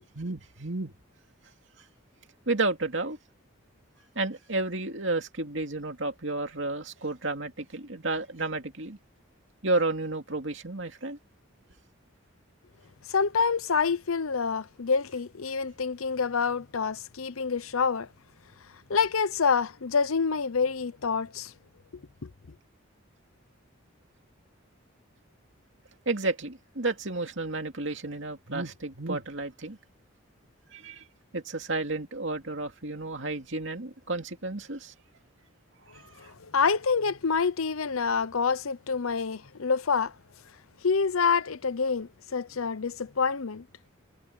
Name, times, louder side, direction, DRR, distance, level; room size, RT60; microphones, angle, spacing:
voice 1, 0.1-0.9 2.5-3.2 4.2-9.0 9.6-11.2 26.1-29.8 30.7-31.0 31.3-34.9, right 2 dB, 60° right, 2.6 m, -31 dB
voice 2, 13.1-18.1 18.9-21.5 22.2-22.3 35.9-40.1 40.8-43.6, left 5 dB, 90° left, 0.8 m, -27 dB
head